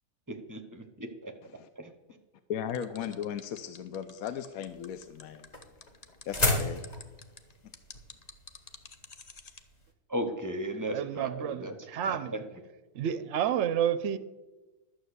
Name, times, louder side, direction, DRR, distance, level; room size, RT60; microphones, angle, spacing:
voice 1, 0.3-1.3 1.8-2.2 10.1-11.8 12.0-12.4, right 1 dB, 15° right, 0.6 m, -36 dB
voice 2, 2.5-5.5 6.3-6.8, left 9 dB, 70° left, 1.0 m, -36 dB
sound 1, 2.7-9.6, left 5 dB, 55° left, 0.4 m, -50 dB
sound 2, 4.6-9.9, left 1 dB, 25° left, 1.3 m, -33 dB
voice 3, 10.9-12.3 12.9-14.2, right 9 dB, 60° right, 0.8 m, -30 dB
12.0 x 6.5 x 8.0 m
omnidirectional pair, 1.7 m